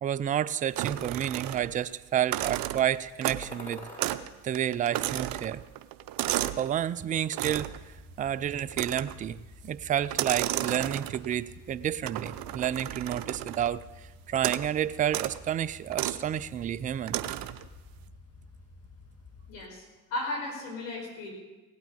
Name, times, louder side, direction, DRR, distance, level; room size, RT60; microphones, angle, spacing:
voice 1, 0.0-3.9 4.4-5.6 6.3-7.7 8.2-13.8 14.3-17.2, right 10 dB, 20° right, 17 dB, 0.3 m, -30 dB
sound 1, 0.8-1.8 2.2-3.6 4.0-4.3 4.5-6.7 7.3-7.8 8.7-9.3 10.0-11.3 12.1-13.8 14.4-14.7 15.1-15.4 15.9-16.2 17.1-17.6, right 14 dB, 50° right, 0.7 m, -33 dB
sound 2, 3.4-4.1 4.7-5.6 5.9-6.7, left 1 dB, 20° left, 5.0 m, -48 dB
sound 3, 7.5-19.6, left 2 dB, 35° left, 2.1 m, -51 dB
voice 2, 19.5-21.3, left 2 dB, 70° left, 0 dB, 4.8 m, -35 dB
17.0 x 9.0 x 5.3 m, 1.1 s
hypercardioid pair, 70°, 43 cm